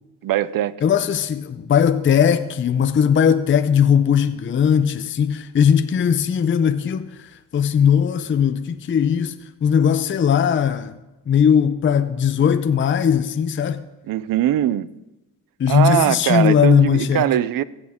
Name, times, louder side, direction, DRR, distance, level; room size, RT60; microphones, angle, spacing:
voice 1, 0.2-0.8 14.1-14.9 15.7-17.6, right 12 dB, 55° right, 0.5 m, -20 dB
voice 2, 0.8-10.9 11.3-13.8 15.6-17.3, left 8 dB, 30° left, 0.5 m, -18 dB
16.0 x 6.3 x 3.6 m
cardioid pair, 80°, 41 cm